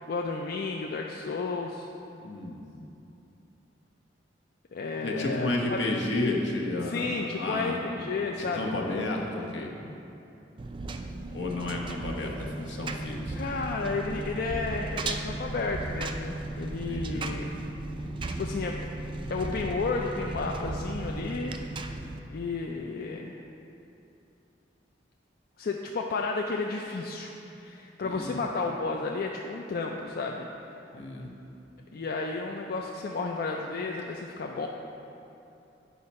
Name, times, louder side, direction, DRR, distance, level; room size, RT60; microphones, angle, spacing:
voice 1, 0.1-1.9 4.7-5.8 6.8-8.7 13.4-17.5 18.3-18.8 19.3-21.6 21.8-21.9 22.3-23.4 25.6-27.3 27.6-30.5 31.9-34.7, left 3 dB, 55° left, 1 dB, 0.4 m, -32 dB
voice 2, 2.1-2.6 5.0-7.8 8.3-9.7 11.3-13.4 16.9-17.3 28.0-28.4 30.9-31.3, left 2 dB, 75° left, 0 dB, 1.0 m, -32 dB
Engine, 10.6-22.2, right 2 dB, 25° right, 0.3 m, -36 dB
8.6 x 5.7 x 4.2 m, 2.9 s
head